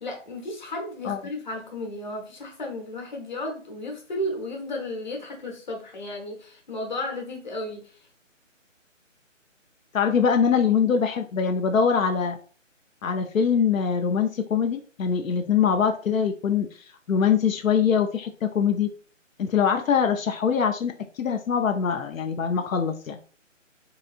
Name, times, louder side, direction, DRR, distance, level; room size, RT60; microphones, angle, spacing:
voice 1, 0.0-7.9, left 1 dB, 35° left, 0.9 m, -34 dB
voice 2, 9.9-12.4 13.0-16.7 17.1-18.9 19.4-23.2, left 7 dB, 85° left, 0.6 m, -23 dB
3.9 x 2.7 x 2.4 m
figure-of-eight pair, 160°, 39 cm